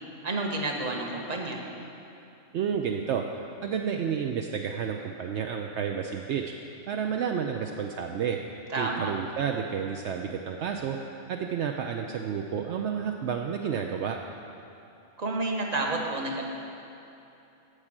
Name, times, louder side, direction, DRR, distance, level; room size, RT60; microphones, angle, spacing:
voice 1, 0.2-1.6 8.7-9.1 15.2-16.4, right 2 dB, 35° right, 1 dB, 1.2 m, -30 dB
voice 2, 2.5-3.2 3.6-6.5 6.9-8.4 8.8-11.0 11.3-14.2, right 7 dB, 70° right, 3 dB, 0.9 m, -30 dB
14.0 x 5.0 x 8.7 m, 2.8 s
omnidirectional pair, 1.3 m